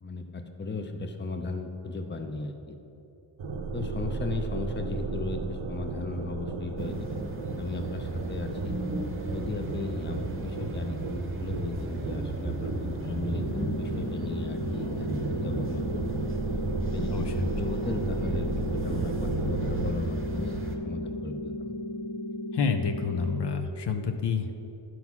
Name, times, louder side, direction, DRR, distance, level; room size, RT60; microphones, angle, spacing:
voice 1, 0.0-2.8 3.7-7.2 7.6-8.8 9.3-16.2 16.9-21.8, left 3 dB, 25° left, 6 dB, 0.6 m, -36 dB
sound 1, 3.4-19.9, right 3 dB, 80° right, 0.7 m, -35 dB
sound 2, 6.8-20.8, right 2 dB, 30° right, 0.8 m, -35 dB
sound 3, 13.4-23.4, left 1 dB, 90° left, 1.0 m, -36 dB
voice 2, 17.1-17.5 22.5-24.6, left 5 dB, 65° left, 6 dB, 0.6 m, -29 dB
11.0 x 3.9 x 5.9 m, 3.0 s
wide cardioid pair, 90°, 45 cm